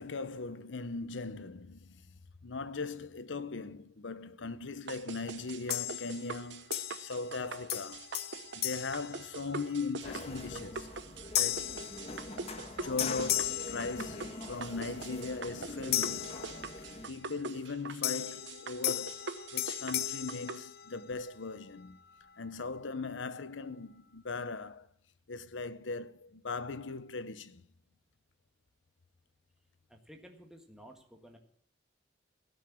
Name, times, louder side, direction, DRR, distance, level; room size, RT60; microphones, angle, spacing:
voice 1, 0.0-2.0 2.4-8.1 8.5-10.9 11.4-11.8 12.8-16.6 17.1-22.0 22.4-24.9 25.3-27.6, left 4 dB, 85° left, 0.9 m, -39 dB
sound 1, 4.9-20.6, right 4 dB, 70° right, 0.8 m, -44 dB
sound 2, 5.7-6.4 6.7-7.4 7.7-9.9 10.4-10.6 11.3-12.7 13.0-14.6 15.9-17.1 18.0-21.3, left 14 dB, 55° left, 0.6 m, -36 dB
sound 3, 10.0-17.1, left 2 dB, 35° left, 1.4 m, -44 dB
voice 2, 29.9-31.4, equal, 5° right, 1.6 m, -53 dB
17.0 x 6.5 x 8.6 m
head